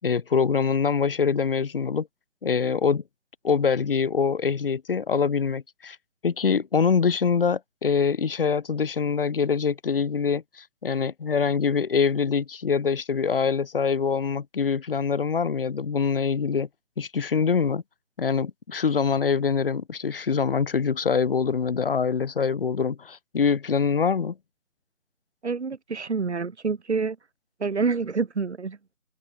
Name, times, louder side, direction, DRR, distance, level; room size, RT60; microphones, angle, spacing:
voice 1, 0.0-2.1 2.4-3.0 3.4-6.0 6.2-16.7 17.0-17.8 18.2-24.4, left 6 dB, 40° left, 6.8 m, -24 dB
voice 2, 25.4-27.2 27.6-28.8, right 4 dB, 50° right, 3.9 m, -27 dB
open air
figure-of-eight pair, 155°, 42 cm